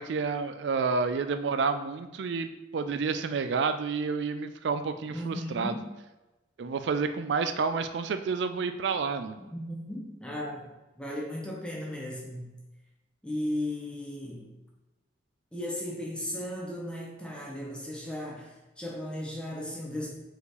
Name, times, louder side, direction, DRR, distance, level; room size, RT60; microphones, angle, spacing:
voice 1, 0.0-5.8 6.6-9.4, right 5 dB, 70° right, 9 dB, 0.4 m, -29 dB
voice 2, 5.1-5.9 9.4-12.5 13.2-14.5 15.5-20.1, left 1 dB, 5° left, -3 dB, 1.2 m, -36 dB
4.7 x 4.5 x 5.0 m, 1.1 s
head